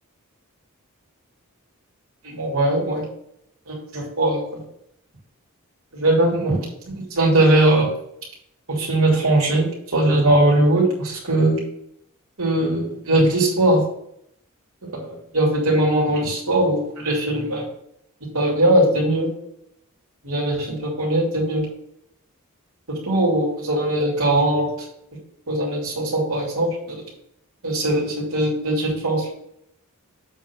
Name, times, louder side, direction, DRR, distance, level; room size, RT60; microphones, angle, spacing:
voice 1, 2.2-3.1 3.7-4.6 5.9-6.6 7.1-7.9 8.7-9.7 9.9-11.6 12.4-13.8 14.8-17.6 18.3-19.3 20.2-21.6 22.9-24.7 25.5-27.0 27.6-29.3, right 1 dB, 70° right, -3 dB, 3.1 m, -20 dB
7.9 x 3.8 x 6.3 m, 0.73 s
head